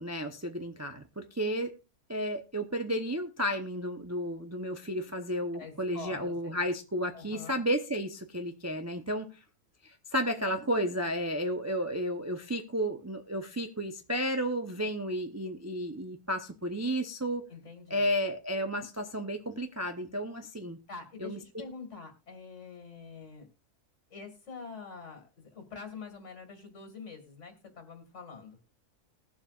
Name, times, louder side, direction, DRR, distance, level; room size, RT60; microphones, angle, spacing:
voice 1, 0.0-1.7 2.1-9.3 9.8-17.5 17.9-20.8 21.2-21.4, equal, 15° right, 4 dB, 0.5 m, -32 dB
voice 2, 5.5-6.5 7.1-7.6 17.5-18.1 20.9-23.5 24.1-28.6, left 5 dB, 50° left, 5 dB, 2.4 m, -45 dB
20.0 x 7.3 x 2.4 m, 0.31 s
omnidirectional pair, 1.6 m